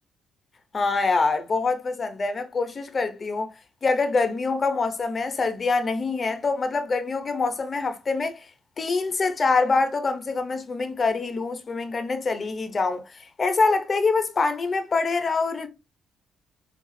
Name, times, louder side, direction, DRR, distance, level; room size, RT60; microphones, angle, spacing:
voice 1, 0.7-3.5 3.8-8.5 8.8-15.7, left 4 dB, 35° left, 0.6 m, -25 dB
4.7 x 2.3 x 2.6 m
cardioid pair, 90°, 0 cm